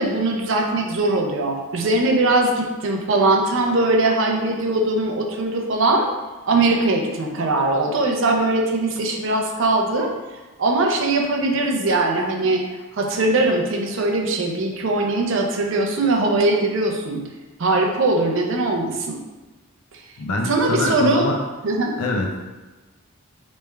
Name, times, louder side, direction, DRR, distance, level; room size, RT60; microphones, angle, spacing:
voice 1, 0.0-6.1 6.5-10.1 10.6-12.6 13.0-17.2 17.6-19.2 20.4-21.3 21.6-21.9, right 2 dB, 55° right, 2 dB, 0.5 m, -20 dB
voice 2, 20.2-21.4 22.0-22.4, left 2 dB, 80° left, 1 dB, 0.6 m, -24 dB
3.4 x 3.1 x 3.3 m, 1.2 s
head